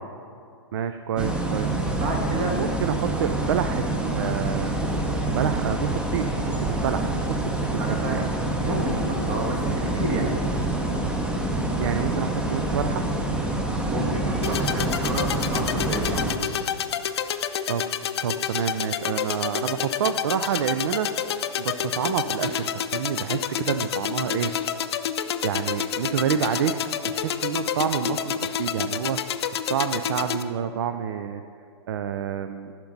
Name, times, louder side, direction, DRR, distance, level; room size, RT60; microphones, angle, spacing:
voice 1, 0.7-1.7 2.5-4.8 5.3-6.3 6.6-8.2 11.8-13.1 17.7-17.8 18.2-21.1 21.6-24.5 25.4-26.7 27.0-29.2 29.5-31.4 31.9-32.7, right 8 dB, 60° right, 9 dB, 0.4 m, -28 dB
sound 1, 1.2-16.4, right 2 dB, 5° right, 0.7 m, -26 dB
voice 2, 2.0-2.6 7.8-10.4 13.8-16.3, right 2 dB, 40° right, 1 dB, 1.8 m, -30 dB
sound 2, 14.4-30.4, left 9 dB, 60° left, 0.5 m, -29 dB
13.0 x 6.0 x 3.9 m, 2.4 s
figure-of-eight pair, 115°, 15 cm